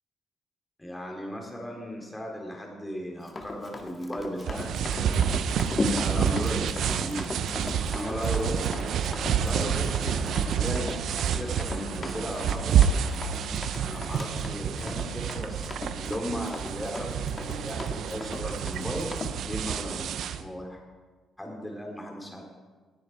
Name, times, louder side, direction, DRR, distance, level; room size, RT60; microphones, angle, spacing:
voice 1, 0.8-7.4 7.9-8.9 9.4-11.0 11.3-12.9 13.7-19.2 19.4-20.1 20.4-20.8 21.4-22.4, equal, 10° left, 0 dB, 3.9 m, -36 dB
Run, 3.2-19.3, left 2 dB, 30° left, 1.9 m, -37 dB
sound 1, 4.4-20.4, right 8 dB, 70° right, 0.7 m, -28 dB
Crowd, 7.6-14.9, right 1 dB, 10° right, 2.3 m, -46 dB
19.0 x 10.5 x 4.7 m, 1.4 s
cardioid pair, 90°, 0 cm